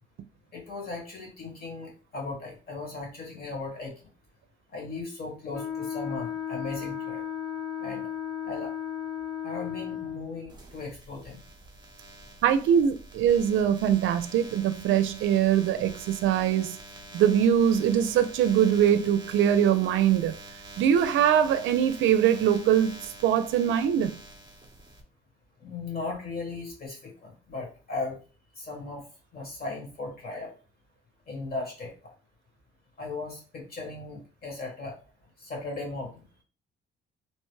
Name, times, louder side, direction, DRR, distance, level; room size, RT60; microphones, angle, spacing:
voice 1, 0.5-3.9 4.7-7.2 7.8-8.1 8.4-8.7 9.4-11.4 25.6-28.2 28.6-29.1 29.3-30.5 31.3-32.1 33.0-35.0 35.4-36.2, left 3 dB, 50° left, 1.5 m, -37 dB
Wind instrument woodwind instrument, 5.5-10.4, left 9 dB, 65° left, 1.1 m, -34 dB
sound 1, 10.5-25.0, right 2 dB, 20° right, 0.8 m, -46 dB
voice 2, 12.4-16.8 17.1-20.4 20.8-24.2, right 9 dB, 75° right, 0.4 m, -22 dB
3.0 x 2.1 x 3.1 m
cardioid pair, 90°, 20 cm